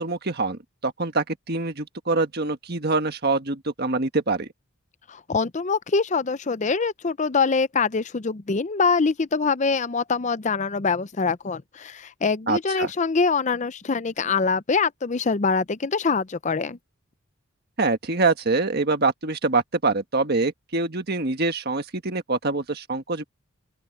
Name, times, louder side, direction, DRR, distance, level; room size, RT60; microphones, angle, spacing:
voice 1, 0.0-4.5 12.5-12.9 17.8-23.2, right 3 dB, 50° right, 1.6 m, -25 dB
voice 2, 5.1-16.8, left 4 dB, 35° left, 0.5 m, -24 dB
open air
head